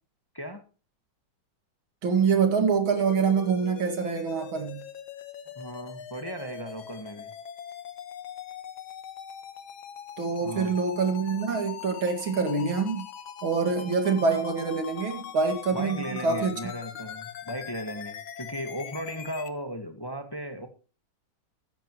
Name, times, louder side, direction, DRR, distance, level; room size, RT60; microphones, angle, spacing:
voice 1, 2.0-4.8 10.2-13.1 13.4-16.6, right 5 dB, 90° right, 3.0 m, -25 dB
sound 1, 2.9-19.5, left 9 dB, 85° left, 2.0 m, -42 dB
voice 2, 5.6-7.3 10.4-10.7 15.7-20.7, equal, 15° left, 1.4 m, -36 dB
14.0 x 11.5 x 3.1 m
omnidirectional pair, 2.2 m